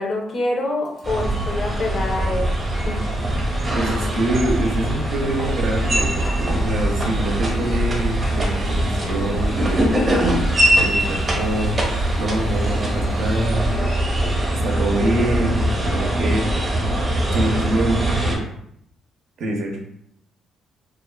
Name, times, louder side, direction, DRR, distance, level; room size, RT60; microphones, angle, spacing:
voice 1, 0.0-2.5 2.9-3.1, left 2 dB, 45° left, 1 dB, 0.6 m, -25 dB
Engine / Sawing, 0.8-14.5, left 1 dB, 70° left, 0.9 m, -45 dB
sound 1, 1.0-18.4, right 1 dB, 30° right, 0.7 m, -22 dB
sound 2, 2.4-4.1 4.4-12.0 12.3-15.9, right 1 dB, 10° right, 0.3 m, -34 dB
voice 2, 3.7-9.9 10.8-11.8 12.2-13.8 14.5-16.6 17.3-18.4 19.4-19.8, right 1 dB, 75° right, 1 dB, 0.5 m, -25 dB
2.3 x 2.3 x 2.2 m, 0.72 s
cardioid pair, 90°, 0 cm